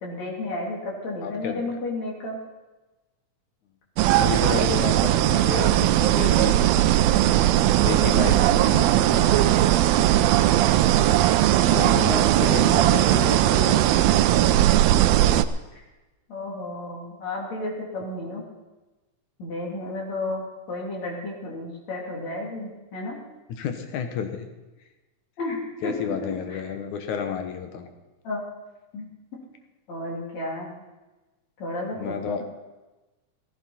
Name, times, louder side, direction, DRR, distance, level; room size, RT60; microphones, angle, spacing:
voice 1, 0.0-2.4 12.5-13.8 15.7-15.8 16.3-18.4 19.4-23.2 25.4-26.6 28.2-28.4 28.9-29.1 29.9-30.8 31.6-32.4, left 2 dB, 65° left, -4 dB, 4.4 m, -32 dB
voice 2, 1.2-1.6 4.2-6.6 7.8-9.5 11.6-13.3 23.6-24.5 25.8-27.9 32.0-32.4, left 7 dB, 85° left, 6 dB, 2.7 m, -31 dB
sound 1, 4.0-15.4, right 13 dB, 80° right, 1.7 m, -19 dB
16.0 x 15.0 x 4.3 m, 1.1 s
omnidirectional pair, 3.3 m